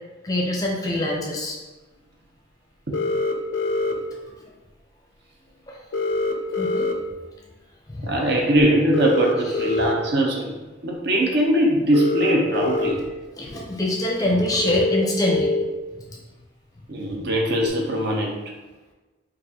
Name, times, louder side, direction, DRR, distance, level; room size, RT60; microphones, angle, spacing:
voice 1, 0.2-1.6 4.3-4.5 5.7-5.8 6.6-6.9 7.9-8.2 9.7-9.8 13.4-15.5 15.9-16.1, left 1 dB, 20° left, -2 dB, 0.5 m, -25 dB
sound 1, 2.9-3.9 5.9-6.9 8.9-9.9 11.9-12.9 13.5-13.6 14.6-15.6 17.6-17.7, left 3 dB, 80° left, 0.4 m, -24 dB
voice 2, 8.0-13.0 16.9-18.4, right 1 dB, 55° right, 0 dB, 0.6 m, -21 dB
4.6 x 2.4 x 2.7 m, 1.2 s
head